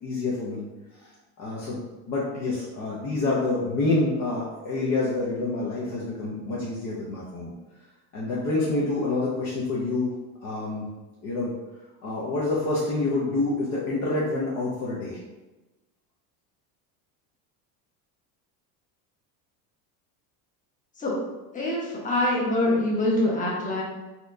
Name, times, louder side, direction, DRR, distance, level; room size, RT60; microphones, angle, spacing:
voice 1, 0.0-0.7 1.4-7.5 8.1-10.9 11.2-11.5 12.0-15.2, left 2 dB, 40° left, -6 dB, 0.8 m, -27 dB
voice 2, 21.5-23.8, left 1 dB, 15° left, -4 dB, 1.0 m, -24 dB
4.2 x 2.4 x 2.6 m, 1.1 s
supercardioid pair, 125°, 45 cm